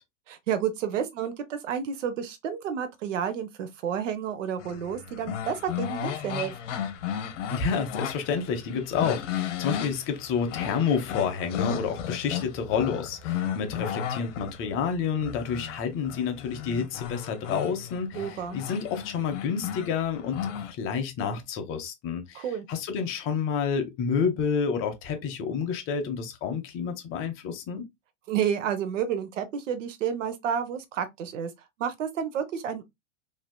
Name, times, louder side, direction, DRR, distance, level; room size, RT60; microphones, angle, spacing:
voice 1, 0.3-6.5 18.1-18.6 22.3-22.7 28.3-31.5 31.8-32.8, right 8 dB, 85° right, 0.8 m, -30 dB
sound 1, 4.6-20.7, left 9 dB, 75° left, 0.9 m, -34 dB
voice 2, 7.5-27.8, left 6 dB, 35° left, 0.8 m, -29 dB
3.2 x 2.8 x 2.2 m
hypercardioid pair, 125°, 37 cm